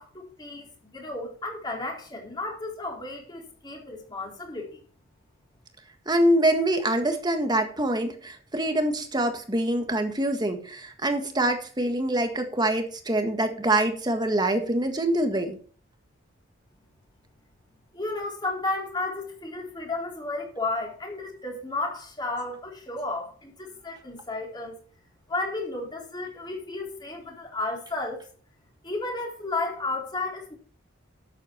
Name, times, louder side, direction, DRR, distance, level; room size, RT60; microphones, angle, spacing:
voice 1, 0.0-4.8 17.9-24.8 25.3-28.2 28.8-30.5, left 2 dB, 20° left, 3.9 m, -33 dB
voice 2, 6.1-15.6, right 1 dB, 20° right, 1.7 m, -25 dB
12.0 x 8.3 x 4.6 m
head